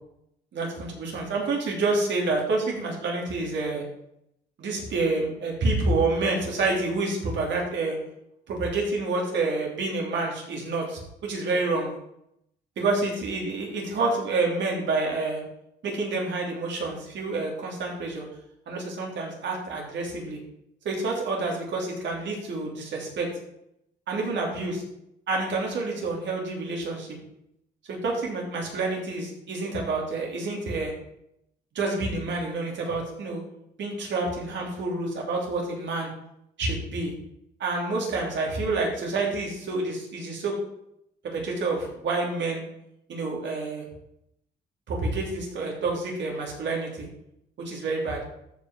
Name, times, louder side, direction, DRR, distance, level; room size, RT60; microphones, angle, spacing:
voice 1, 0.5-3.8 4.6-7.9 8.5-11.9 12.8-15.4 15.8-18.2 18.7-20.4 20.8-23.3 24.1-24.8 25.3-27.2 27.9-30.9 31.7-33.4 33.8-36.1 36.6-37.1 37.6-40.5 41.2-42.6 43.1-43.9 44.9-47.1 47.6-48.2, right 3 dB, 65° right, -1 dB, 2.9 m, -28 dB
13.5 x 5.1 x 3.8 m, 0.79 s
cardioid pair, 90°, 20 cm